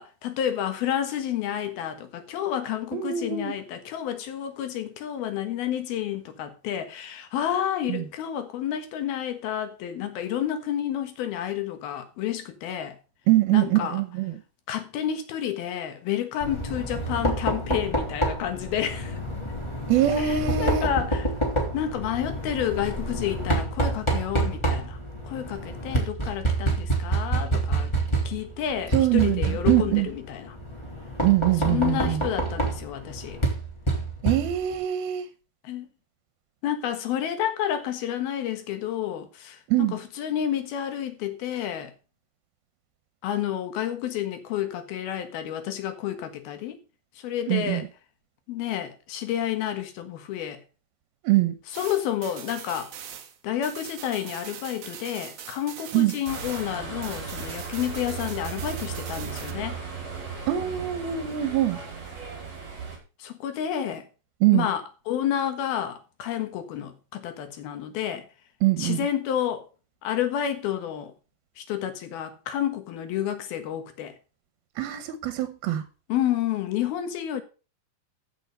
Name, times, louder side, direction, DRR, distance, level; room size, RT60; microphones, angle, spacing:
voice 1, 0.0-13.0 13.5-14.0 14.7-19.2 20.1-21.3 21.7-25.0 25.3-27.9 28.3-30.6 31.7-33.4 35.6-35.9 36.6-41.9 43.2-46.8 47.2-47.8 48.5-50.6 51.7-52.9 53.4-59.8 63.2-64.1 64.5-68.3 68.8-69.7 70.0-71.1 71.6-74.2 76.1-77.4, left 10 dB, 85° left, 3.5 m, -30 dB
voice 2, 2.9-3.5 7.9-8.0 13.3-14.4 19.9-20.9 28.9-30.1 31.2-32.2 34.2-35.3 39.7-40.0 47.5-47.9 51.2-51.6 55.9-56.2 60.5-61.8 64.4-64.7 68.6-69.1 74.8-75.8, right 13 dB, 85° right, 2.9 m, -23 dB
Knock, 16.4-34.8, right 2 dB, 10° left, 2.6 m, -28 dB
sound 1, 51.7-56.8 57.0-59.5, right 9 dB, 60° right, 1.9 m, -42 dB
sound 2, 56.3-63.0, right 6 dB, 45° right, 6.0 m, -36 dB
14.5 x 6.5 x 5.4 m
omnidirectional pair, 4.2 m